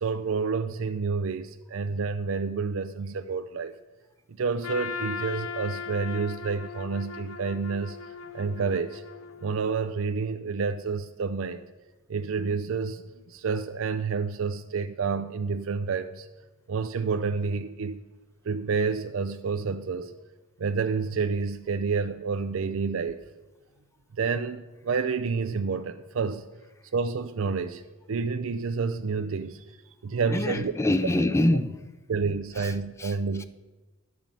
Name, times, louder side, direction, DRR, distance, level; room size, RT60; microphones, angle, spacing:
voice 1, 0.0-3.7 4.4-8.0 8.3-9.0 9.4-11.6 12.1-13.0 13.3-16.3 16.7-18.0 18.4-20.1 20.6-23.2 24.2-26.4 26.9-27.8 28.1-29.6 30.0-30.7 32.1-33.4, right 5 dB, 65° right, 0.4 m, -29 dB
Trumpet, 4.6-9.7, left 5 dB, 90° left, 0.6 m, -38 dB
voice 2, 30.3-31.9 32.5-33.2, left 1 dB, 15° left, 0.4 m, -26 dB
10.5 x 5.3 x 7.4 m
head